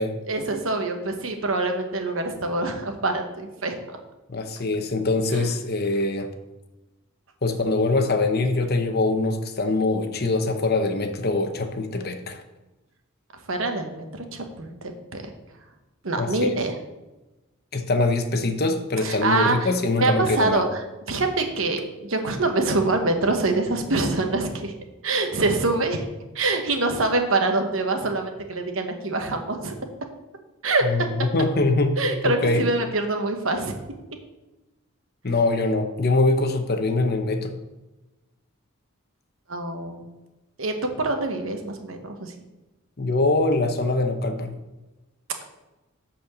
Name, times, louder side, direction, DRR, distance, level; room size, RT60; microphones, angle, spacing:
voice 1, 0.3-3.7 5.3-5.4 13.5-14.1 14.3-15.2 16.0-16.7 19.0-19.7 20.0-20.7 21.1-24.7 25.0-26.0 26.3-29.7 30.6-31.1 32.0-33.7 39.5-40.1 40.6-42.3, right 2 dB, 70° right, 5 dB, 1.1 m, -25 dB
voice 2, 4.3-6.3 7.4-12.4 16.2-16.6 17.7-20.6 30.8-32.0 32.2-32.7 35.2-37.6 43.0-44.5, left 2 dB, 50° left, 6 dB, 0.8 m, -23 dB
8.5 x 4.3 x 6.8 m, 1.1 s
head